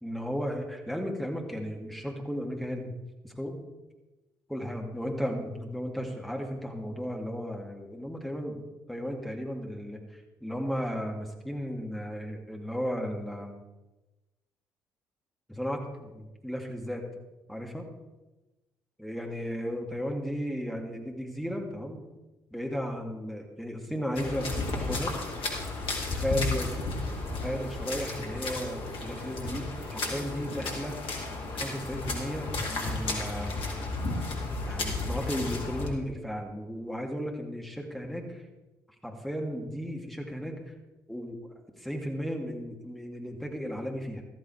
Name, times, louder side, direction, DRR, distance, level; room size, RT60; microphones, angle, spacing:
voice 1, 0.0-2.9 3.2-3.6 4.5-13.5 15.5-17.0 17.5-17.8 19.0-22.0 22.5-25.1 26.2-26.8 27.4-31.1 31.5-33.6 34.7-38.4 39.0-40.5 41.1-41.4 41.8-44.2, equal, ahead, 0 dB, 2.5 m, -35 dB
sound 1, 24.1-35.9, left 2 dB, 55° left, 2.3 m, -33 dB
13.5 x 13.5 x 3.4 m, 1.1 s
figure-of-eight pair, 45°, 11 cm